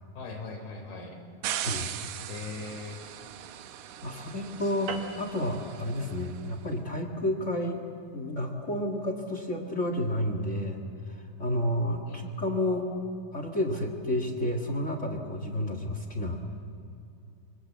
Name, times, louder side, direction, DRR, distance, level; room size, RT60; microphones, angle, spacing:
voice 1, 0.2-1.2 2.3-3.0 4.6-4.7 12.1-12.4, left 4 dB, 80° left, 3 dB, 5.7 m, -39 dB
sound 1, 1.4-6.6, right 11 dB, 70° right, 2.4 m, -39 dB
voice 2, 4.0-7.8 8.1-10.8 11.4-12.9 13.3-16.5, left 1 dB, 30° left, 4 dB, 1.4 m, -30 dB
sound 2, 4.9-9.6, right 5 dB, 50° right, 2.6 m, -45 dB
27.5 x 24.5 x 7.4 m, 2.7 s
omnidirectional pair, 4.3 m